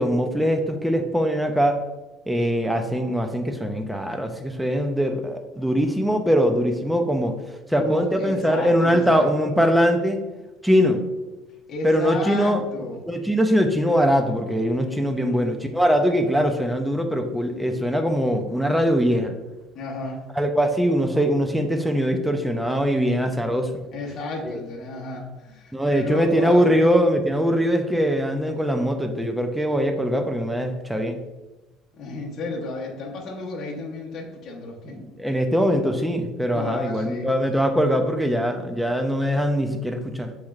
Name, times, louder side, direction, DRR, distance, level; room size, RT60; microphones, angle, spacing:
voice 1, 0.0-1.8 2.3-7.4 7.7-10.2 10.6-11.0 11.8-12.6 13.1-19.4 20.4-23.7 24.4-24.6 25.7-31.2 34.9-40.3, equal, ahead, 5 dB, 0.4 m, -22 dB
voice 2, 7.8-9.3 11.7-13.0 14.8-15.5 19.7-20.3 23.9-26.7 31.9-35.0 36.5-37.3, left 2 dB, 40° left, -3 dB, 1.1 m, -33 dB
7.1 x 3.1 x 2.3 m, 1.1 s
cardioid pair, 155°, 0 cm